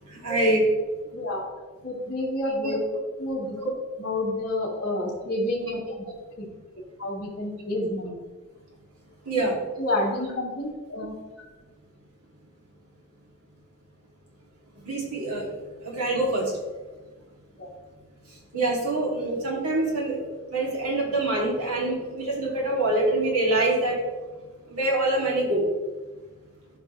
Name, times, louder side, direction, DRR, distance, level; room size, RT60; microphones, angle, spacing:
voice 1, 0.2-0.6 2.6-2.7 3.6-3.7 9.3-9.5 14.9-15.5 15.8-16.4 18.5-20.2 20.5-24.0 24.7-25.6, right 2 dB, 85° right, -3 dB, 2.8 m, -25 dB
voice 2, 1.1-1.5 1.8-2.8 3.2-3.5 4.0-5.8 6.4-6.5 7.0-8.1 9.3-9.4 9.8-11.1 17.6-17.7, left 1 dB, 45° left, -9 dB, 2.0 m, -29 dB
14.0 x 5.3 x 3.3 m, 1.3 s
head